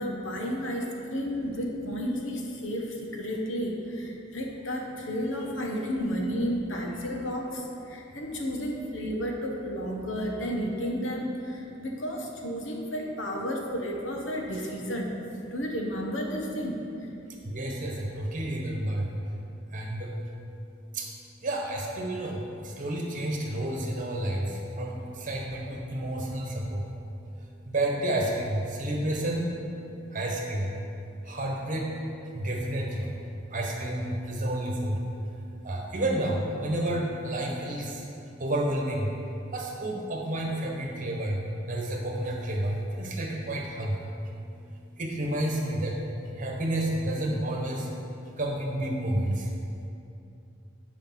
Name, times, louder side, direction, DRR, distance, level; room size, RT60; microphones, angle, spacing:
voice 1, 0.0-15.2 15.5-17.1, equal, 80° left, 0 dB, 1.3 m, -32 dB
voice 2, 17.5-19.0 19.7-20.1 20.9-21.0 21.4-22.4 22.8-24.5 24.8-24.9 25.2-26.8 27.7-29.5 30.1-30.7 31.3-31.9 32.3-33.1 33.5-35.0 35.6-37.9 38.4-39.1 39.5-41.4 41.7-44.0 45.0-45.9 46.4-47.8 48.4-49.3, right 1 dB, 45° right, 0 dB, 1.3 m, -30 dB
9.9 x 5.0 x 5.6 m, 2.7 s
head